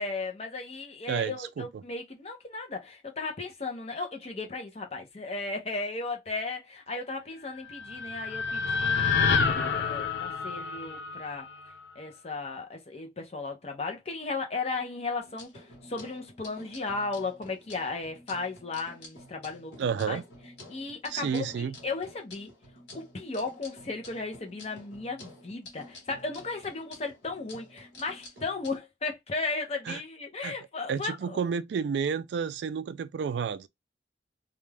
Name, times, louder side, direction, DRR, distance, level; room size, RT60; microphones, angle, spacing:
voice 1, 0.0-11.5 12.0-20.2 20.7-22.5 22.9-31.4, left 3 dB, 35° left, 0.7 m, -35 dB
voice 2, 1.1-1.7 19.8-20.2 21.1-21.8 29.9-30.0 30.4-30.5 30.9-33.7, right 6 dB, 75° right, 0.3 m, -30 dB
sound 1, 7.5-11.8, left 5 dB, 90° left, 0.5 m, -28 dB
sound 2, 15.2-28.8, left 1 dB, 70° left, 1.3 m, -50 dB
2.5 x 2.2 x 3.3 m
head